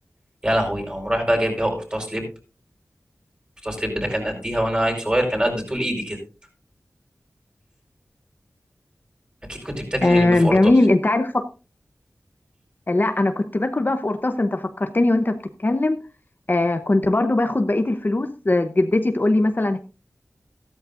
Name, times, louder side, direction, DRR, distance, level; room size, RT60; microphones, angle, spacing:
voice 1, 0.4-2.3 3.6-6.2 9.5-10.7, equal, 20° right, 1 dB, 4.7 m, -24 dB
voice 2, 10.0-11.5 12.9-16.0 16.5-19.8, left 2 dB, 35° left, 7 dB, 0.8 m, -20 dB
14.0 x 13.0 x 2.5 m, 0.33 s
wide cardioid pair, 75°, 5 cm